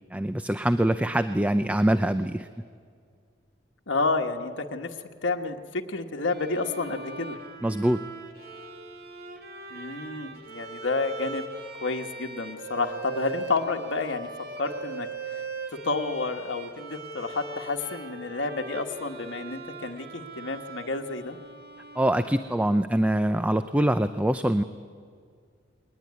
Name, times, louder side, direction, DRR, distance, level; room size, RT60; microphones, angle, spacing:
voice 1, 0.1-2.5 7.6-8.0 22.0-24.6, right 1 dB, 5° right, 11 dB, 0.5 m, -24 dB
voice 2, 3.9-4.9 5.2-7.4 9.7-11.4 11.8-14.3 14.6-15.1 15.8-21.4, left 3 dB, 70° left, 4 dB, 1.4 m, -30 dB
Bowed string instrument, 6.3-22.8, right 3 dB, 55° right, 2.3 m, -41 dB
21.0 x 19.5 x 9.6 m, 2.1 s
head